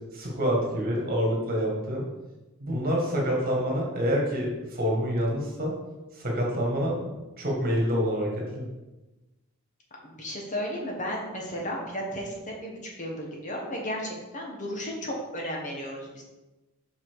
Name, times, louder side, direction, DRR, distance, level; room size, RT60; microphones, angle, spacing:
voice 1, 0.1-2.0 2.6-5.7 6.1-8.6, equal, 40° right, -2 dB, 1.9 m, -27 dB
voice 2, 3.1-3.4 10.0-16.2, equal, 35° left, -1 dB, 1.3 m, -34 dB
5.8 x 5.7 x 4.7 m, 1.1 s
head